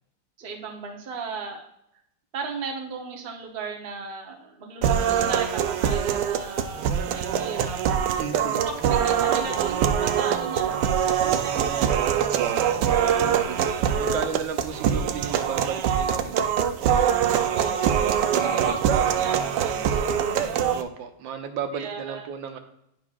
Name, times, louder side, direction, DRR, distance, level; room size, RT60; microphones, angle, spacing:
voice 1, 0.4-1.7 2.3-8.2 8.5-13.2 17.5-18.1 18.4-20.7 21.7-22.3, right 4 dB, 40° right, 2 dB, 0.9 m, -36 dB
sound 1, 4.8-20.8, right 8 dB, 70° right, 1.1 m, -23 dB
voice 2, 8.2-8.6 13.2-17.0 18.4-18.8 20.7-22.6, right 7 dB, 90° right, 6 dB, 1.6 m, -34 dB
10.0 x 6.0 x 2.4 m, 0.78 s
omnidirectional pair, 2.0 m